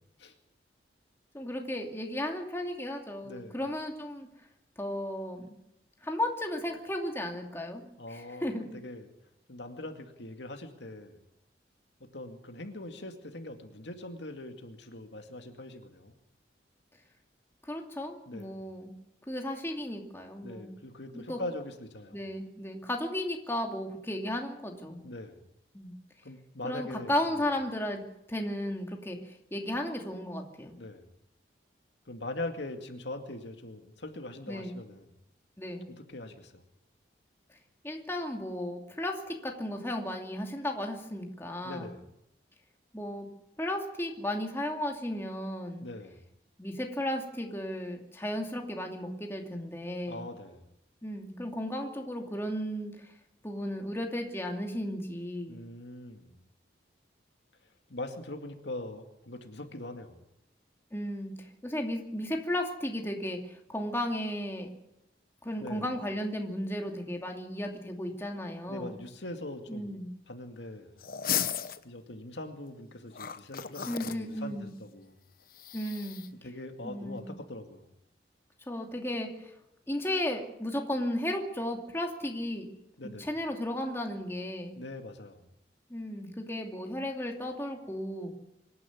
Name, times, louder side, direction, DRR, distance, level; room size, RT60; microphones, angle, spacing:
voice 1, 1.3-4.3 4.8-5.5 6.0-8.7 17.6-18.9 19.3-20.8 21.1-21.4 22.1-25.0 25.7-25.9 26.6-28.0 28.3-30.8 34.5-34.8 35.6-35.9 37.8-41.9 42.9-43.3 43.6-45.9 46.6-50.3 51.0-53.1 53.4-55.6 60.9-61.3 61.6-64.7 65.4-69.0 69.7-70.1 73.9-74.7 75.7-76.2 76.8-77.3 78.7-79.3 79.9-82.7 83.0-84.7 85.9-88.3, left 1 dB, 15° left, 2 dB, 2.5 m, -34 dB
voice 2, 3.2-3.6 8.0-9.1 9.5-11.2 12.0-16.1 18.3-18.6 20.4-22.2 25.0-25.4 26.2-27.2 30.8-31.1 32.1-35.1 35.9-36.6 41.6-42.1 45.8-46.2 50.1-50.6 55.5-56.3 57.9-60.2 65.6-65.9 68.7-71.0 71.8-75.2 76.4-77.9 83.0-83.3 84.8-85.4, left 1 dB, 75° left, 5 dB, 2.3 m, -42 dB
sound 1, 71.0-71.8 73.1-74.2 75.5-76.3, left 9 dB, 50° left, 1.0 m, -34 dB
25.0 x 11.0 x 9.5 m, 0.83 s
head